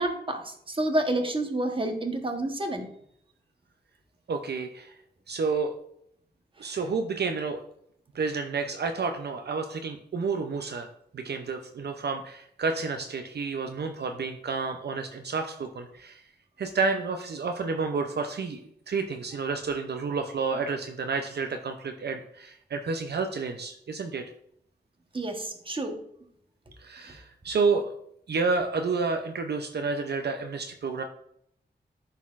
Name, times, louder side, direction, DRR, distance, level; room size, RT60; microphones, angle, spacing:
voice 1, 0.0-2.9 6.6-6.8 25.1-26.0, right 1 dB, 30° right, 4 dB, 1.0 m, -29 dB
voice 2, 4.3-5.0 5.3-5.7 6.6-7.6 8.1-10.9 11.1-16.2 16.6-24.3 26.8-27.9 28.3-31.0, right 4 dB, 70° right, 5 dB, 0.5 m, -30 dB
11.0 x 4.1 x 2.4 m, 0.70 s
wide cardioid pair, 80°, 18 cm